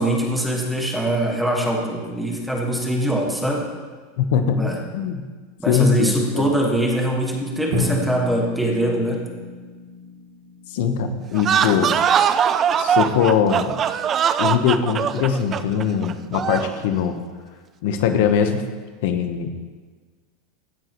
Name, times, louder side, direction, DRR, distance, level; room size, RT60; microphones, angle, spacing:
voice 1, 0.0-3.7 4.5-4.8 5.6-9.3, right 1 dB, ahead, 0 dB, 1.5 m, -23 dB
voice 2, 4.2-5.2 5.7-6.5 10.7-11.9 12.8-13.8 14.4-17.2 17.8-18.6 19.0-19.6, left 7 dB, 65° left, 7 dB, 1.0 m, -21 dB
Drum, 7.7-11.7, left 1 dB, 55° right, 2.2 m, -30 dB
sound 1, 11.3-16.8, right 8 dB, 25° right, 0.4 m, -21 dB
16.0 x 10.0 x 3.0 m, 1.4 s
supercardioid pair, 155°, 0 cm